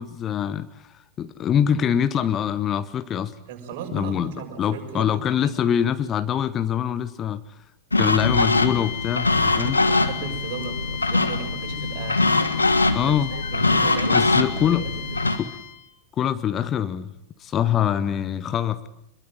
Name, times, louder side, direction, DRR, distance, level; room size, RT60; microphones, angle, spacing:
voice 1, 0.0-3.3 3.9-7.6 7.9-9.8 12.9-13.3 14.1-14.8 15.4-15.5 16.2-17.1 17.4-18.9, left 9 dB, 30° left, 14 dB, 1.1 m, -24 dB
voice 2, 3.4-5.1 5.4-5.8 9.5-12.2 13.0-15.2, right 7 dB, 50° right, 2 dB, 6.9 m, -37 dB
sound 1, 7.9-15.4, left 2 dB, 80° left, 1.6 m, -22 dB
sound 2, 8.2-15.9, left 10 dB, 45° left, 2.2 m, -36 dB
25.5 x 22.5 x 9.2 m, 0.78 s
figure-of-eight pair, 90°, 0 cm